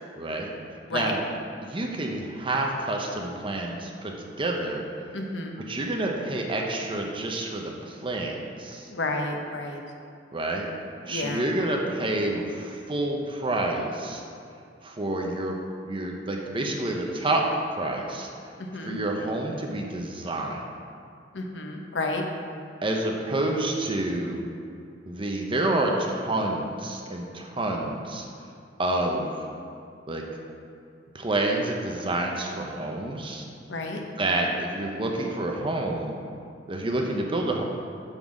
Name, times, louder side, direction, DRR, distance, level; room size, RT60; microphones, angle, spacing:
voice 1, 0.2-0.5 0.9-1.2 1.6-4.8 5.7-8.9 10.3-10.7 11.1-14.2 14.8-17.5 17.7-18.3 18.8-20.6 22.8-24.4 25.1-28.2 28.8-29.3 30.1-30.3 31.1-33.5 34.2-36.1 36.7-37.6, right 2 dB, 30° right, 1 dB, 0.8 m, -28 dB
voice 2, 5.1-5.6 8.9-9.8 11.1-11.4 18.6-19.0 21.3-22.2 33.7-34.0, left 2 dB, 70° left, 2 dB, 0.9 m, -31 dB
8.9 x 4.0 x 6.1 m, 2.4 s
head